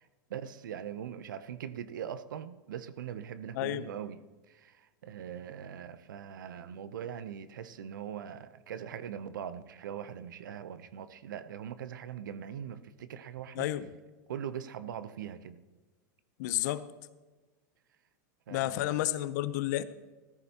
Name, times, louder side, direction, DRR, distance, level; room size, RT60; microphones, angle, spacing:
voice 1, 0.0-4.2 4.5-13.7 14.3-15.6 18.5-19.0, right 9 dB, 90° right, 0.7 m, -41 dB
voice 2, 3.5-3.8 13.5-13.9 16.4-16.9 18.5-19.8, left 14 dB, 65° left, 0.7 m, -31 dB
15.0 x 13.5 x 2.9 m
supercardioid pair, 130°, 10 cm